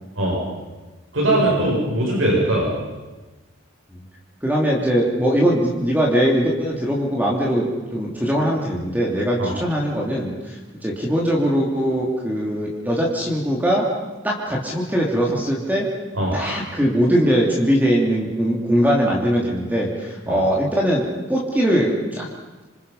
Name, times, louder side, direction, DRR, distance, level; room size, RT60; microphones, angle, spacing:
voice 1, 1.1-2.7 9.4-9.5 16.1-16.3 20.3-20.4, right 1 dB, 85° right, -3 dB, 7.5 m, -20 dB
voice 2, 4.4-13.9 14.2-15.9 16.3-22.3, equal, 10° right, -3 dB, 3.2 m, -21 dB
27.0 x 26.5 x 5.7 m, 1.2 s
head